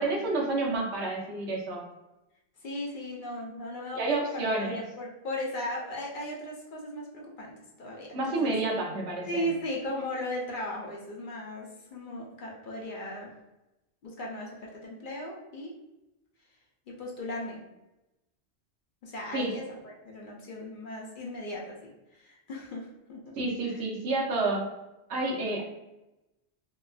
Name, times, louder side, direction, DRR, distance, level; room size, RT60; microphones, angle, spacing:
voice 1, 0.0-1.8 3.9-4.8 8.1-9.5 19.3-19.5 23.4-24.7 25.1-25.6, right 2 dB, 85° right, -1 dB, 1.0 m, -29 dB
voice 2, 2.6-8.5 9.3-13.3 14.0-15.7 16.9-17.6 19.0-23.3 23.6-23.8, left 1 dB, 55° left, -2 dB, 0.7 m, -37 dB
2.8 x 2.4 x 2.3 m, 0.96 s
omnidirectional pair, 1.1 m